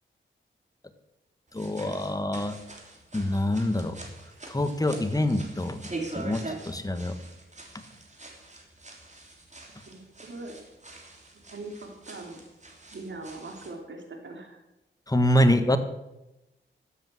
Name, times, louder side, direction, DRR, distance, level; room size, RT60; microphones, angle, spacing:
voice 1, 1.5-2.5 3.1-4.0 4.5-5.8 6.2-7.1 15.1-15.8, left 1 dB, 15° left, 8 dB, 1.6 m, -25 dB
sound 1, 1.5-13.8, right 2 dB, 35° right, 3.2 m, -44 dB
voice 2, 9.9-10.6 11.3-12.4 12.9-14.6, right 2 dB, 65° right, 2 dB, 3.4 m, -41 dB
13.5 x 8.3 x 7.9 m, 0.95 s
cardioid pair, 60°, 21 cm